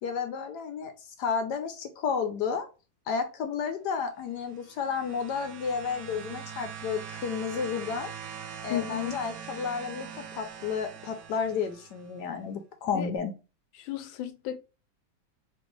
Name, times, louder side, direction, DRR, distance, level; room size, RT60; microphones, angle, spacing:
voice 1, 0.0-2.7 3.1-8.1 8.6-13.3, left 6 dB, 70° left, 1.1 m, -32 dB
sound 1, 4.3-12.1 13.2-13.3, right 7 dB, 70° right, 1.1 m, -43 dB
voice 2, 8.7-9.2 12.9-13.1 13.8-14.6, left 12 dB, 90° left, 1.4 m, -33 dB
4.4 x 2.9 x 3.1 m
omnidirectional pair, 2.1 m